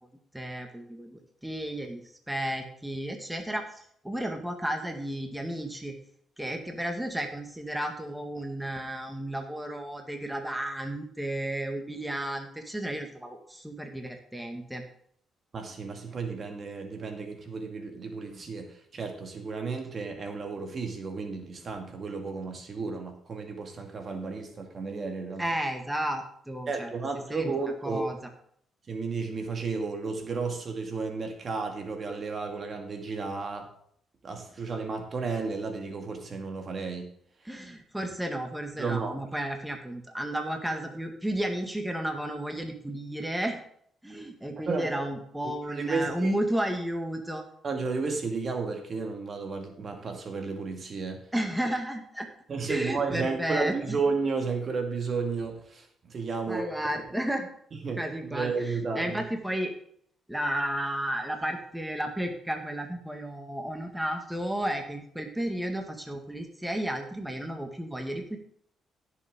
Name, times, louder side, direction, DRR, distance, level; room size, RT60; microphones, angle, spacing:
voice 1, 0.3-2.0 2.3-5.9 6.4-14.8 25.4-26.9 27.3-27.5 27.8-28.2 37.5-43.6 44.0-47.4 51.3-52.3 52.7-53.7 56.4-57.5 58.0-59.7 60.3-68.4, right 1 dB, 5° right, 3 dB, 1.8 m, -33 dB
voice 2, 15.5-25.5 26.7-28.1 28.9-33.7 34.2-37.1 37.4-37.6 38.8-39.1 44.7-45.1 45.4-46.4 47.6-51.2 52.5-56.7 57.7-59.2, right 4 dB, 45° right, 4 dB, 1.9 m, -33 dB
16.0 x 7.1 x 3.7 m, 0.65 s
cardioid pair, 90°, 0 cm